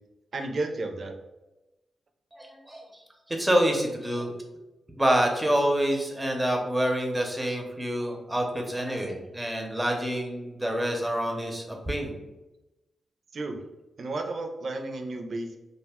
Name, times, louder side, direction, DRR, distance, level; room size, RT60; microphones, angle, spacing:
voice 1, 0.3-1.1 13.3-13.6 14.0-15.5, right 2 dB, 55° right, 5 dB, 0.4 m, -32 dB
voice 2, 2.3-2.8 3.3-4.4 5.0-12.1, equal, 10° right, 2 dB, 0.6 m, -27 dB
2.4 x 2.1 x 3.4 m, 1.0 s
cardioid pair, 80°, 0 cm